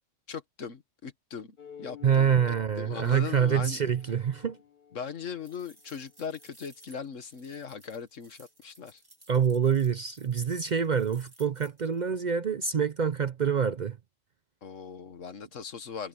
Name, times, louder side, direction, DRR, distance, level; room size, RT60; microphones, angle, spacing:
voice 1, 0.3-3.8 4.9-9.0 14.6-16.1, left 6 dB, 80° left, 1.8 m, -39 dB
sound 1, 1.6-6.5, left 7 dB, 40° left, 1.2 m, -51 dB
voice 2, 2.0-4.6 9.3-14.0, right 7 dB, 45° right, 0.6 m, -26 dB
sound 2, 5.4-12.0, right 1 dB, 15° right, 2.4 m, -58 dB
omnidirectional pair, 1.3 m